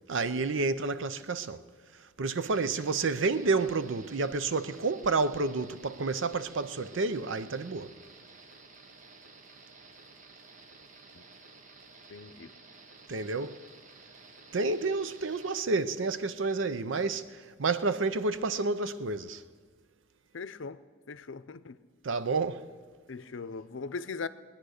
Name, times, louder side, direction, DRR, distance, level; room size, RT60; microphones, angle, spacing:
voice 1, 0.1-1.6 2.2-7.9 13.1-13.6 14.5-19.4 22.0-22.7, right 3 dB, 80° right, 0.6 m, -30 dB
sound 1, 2.4-15.6, right 3 dB, 40° right, 1.0 m, -53 dB
voice 2, 12.1-12.5 20.3-20.8 21.1-21.8 23.1-24.3, left 4 dB, 75° left, 0.6 m, -39 dB
21.0 x 9.3 x 6.5 m
head